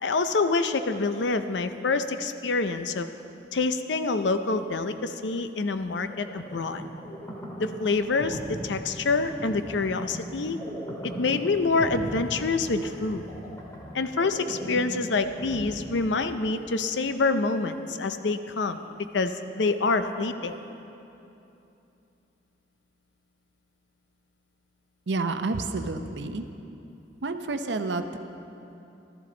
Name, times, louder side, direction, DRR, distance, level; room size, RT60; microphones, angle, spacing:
voice 1, 0.0-3.1 3.5-6.8 7.6-10.6 11.0-13.3 13.9-18.8 19.1-20.5, left 3 dB, 85° left, 9 dB, 0.6 m, -26 dB
sound 1, 6.1-16.6, equal, 15° left, 2.0 m, -39 dB
voice 2, 25.1-26.5 27.2-28.2, right 3 dB, 75° right, 8 dB, 0.7 m, -29 dB
14.5 x 13.0 x 3.9 m, 2.8 s
head